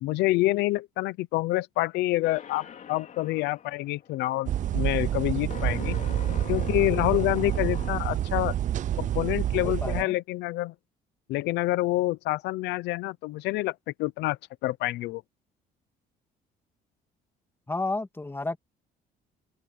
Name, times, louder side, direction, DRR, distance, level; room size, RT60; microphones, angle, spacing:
voice 1, 0.0-6.0 6.5-8.5 9.0-10.7 11.3-15.2, left 17 dB, 85° left, 0.7 m, -27 dB
sound 1, 2.2-8.4, left 8 dB, 50° left, 3.9 m, -43 dB
sound 2, 4.5-10.0, right 11 dB, 45° right, 0.6 m, -28 dB
voice 2, 9.6-10.1 17.7-18.6, left 2 dB, 15° left, 2.5 m, -31 dB
cardioid pair, 110°, 17 cm